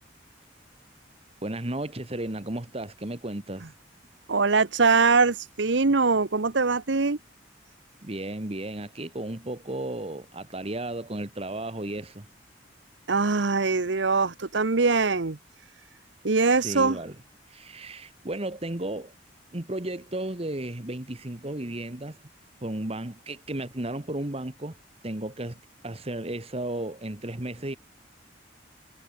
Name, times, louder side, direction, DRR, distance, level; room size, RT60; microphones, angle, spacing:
voice 1, 1.4-3.6 8.0-12.3 16.6-17.1 17.5-19.1 19.5-22.2 22.6-27.8, right 1 dB, 35° right, 1.6 m, -34 dB
voice 2, 4.3-7.2 13.1-15.4 16.2-17.0, right 4 dB, 75° right, 1.0 m, -22 dB
head